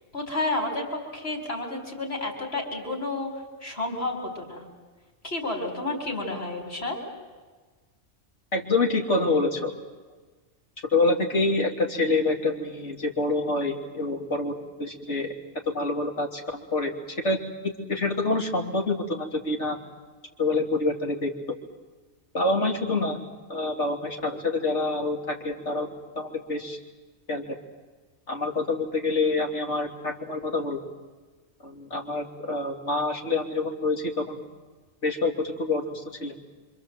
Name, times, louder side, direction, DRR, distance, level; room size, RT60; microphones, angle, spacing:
voice 1, 0.1-3.3 3.6-4.6 5.2-7.0, left 2 dB, 60° left, 3 dB, 4.4 m, -30 dB
voice 2, 8.5-9.7 10.9-15.3 15.7-16.9 17.2-19.8 20.4-21.3 22.3-23.2 23.5-25.9 26.1-26.8 27.3-27.6 28.3-30.8 31.6-34.5 35.0-36.3, left 2 dB, 85° left, 1 dB, 3.4 m, -27 dB
26.5 x 26.0 x 7.8 m, 1.3 s
omnidirectional pair, 1.2 m